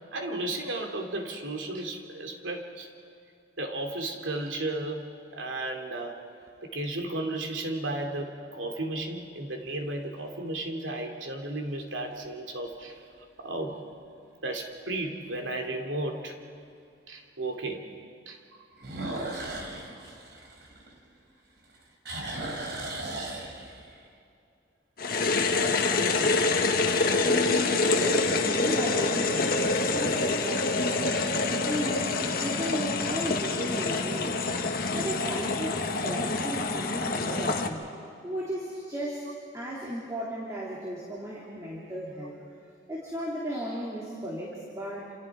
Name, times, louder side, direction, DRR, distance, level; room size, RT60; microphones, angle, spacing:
voice 1, 0.1-2.9 3.6-6.2 6.6-13.0 13.4-13.8 14.4-16.4 17.1-17.9 18.3-18.4, right 2 dB, 90° right, 3 dB, 2.8 m, -34 dB
sound 1, 5.1-5.8 6.5-6.6 11.8-12.3 12.7-12.8 13.4-13.5 13.7-13.8 15.3-15.4 18.8-21.3 21.6-24.0, right 2 dB, 60° right, 3.3 m, -37 dB
sound 2, 25.0-37.7, left 3 dB, 50° left, 1.5 m, -26 dB
voice 2, 27.3-31.4 31.6-34.4 34.9-37.9 38.2-42.3 42.9-45.1, equal, 15° right, -5 dB, 3.3 m, -35 dB
29.0 x 28.0 x 4.9 m, 2.5 s
head